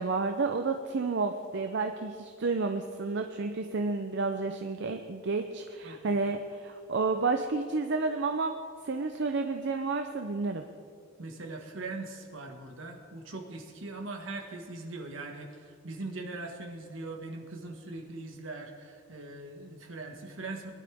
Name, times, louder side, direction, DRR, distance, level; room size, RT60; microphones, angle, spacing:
voice 1, 0.0-8.6 8.8-10.6, right 3 dB, 60° right, 6 dB, 0.6 m, -30 dB
voice 2, 5.8-6.2 11.2-20.7, right 2 dB, 75° right, 2 dB, 1.7 m, -41 dB
21.5 x 11.5 x 3.5 m, 2.2 s
head